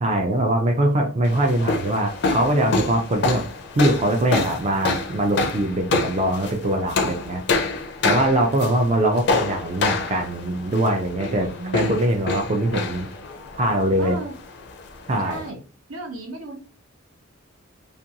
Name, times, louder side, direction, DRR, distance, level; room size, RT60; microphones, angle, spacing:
voice 1, 0.0-3.4 3.7-7.6 8.0-13.1 13.6-14.2 15.1-15.4, right 1 dB, 30° right, 2 dB, 0.3 m, -22 dB
sound 1, 1.2-15.5, left 3 dB, 50° left, 0.4 m, -27 dB
voice 2, 11.3-12.0 14.0-14.3 15.2-15.6 15.9-16.6, right 2 dB, 85° right, 2 dB, 0.7 m, -34 dB
2.5 x 2.2 x 2.8 m, 0.35 s
head